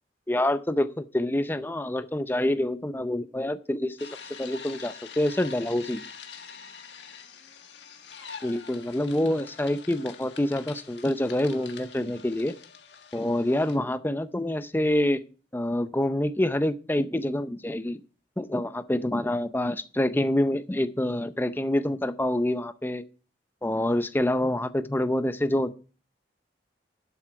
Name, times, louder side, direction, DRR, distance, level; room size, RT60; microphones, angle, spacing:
voice 1, 0.3-4.0 4.4-6.0 8.4-12.5 13.1-15.2 15.5-18.0 18.4-23.0 23.6-25.7, left 1 dB, 10° left, 12 dB, 0.5 m, -26 dB
sound 1, 4.0-13.8, left 6 dB, 85° left, 1.5 m, -45 dB
12.0 x 7.5 x 4.5 m, 0.37 s
head